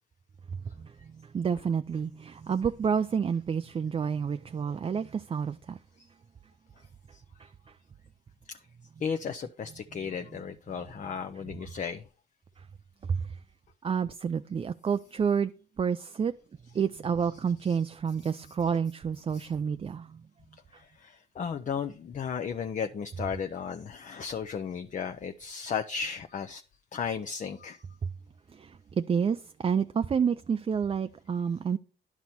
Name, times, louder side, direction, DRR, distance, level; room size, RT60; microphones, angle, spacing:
voice 1, 0.8-5.8 7.4-7.8 11.4-11.5 12.6-12.7 13.0-13.4 13.8-15.5 15.8-16.3 16.7-20.2 28.0-28.1 28.5-31.8, right 6 dB, 30° right, 0.4 m, -29 dB
voice 2, 9.0-12.0 17.7-17.8 19.3-19.5 20.7-26.6 26.9-27.8, left 6 dB, 40° left, 0.6 m, -35 dB
10.5 x 6.1 x 4.2 m
cardioid pair, 90°, 20 cm